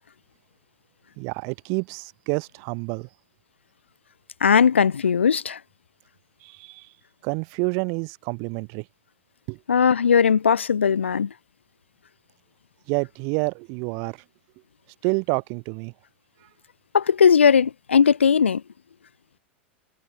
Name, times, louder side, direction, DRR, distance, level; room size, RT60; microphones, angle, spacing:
voice 1, 1.2-3.1 6.4-6.9 7.2-8.8 9.5-9.6 12.9-14.2 15.0-15.9, right 38 dB, 50° right, 4.1 m, -28 dB
voice 2, 4.4-5.6 9.7-11.3 16.9-18.6, left 6 dB, 80° left, 0.4 m, -18 dB
figure-of-eight pair, 90°, 6 cm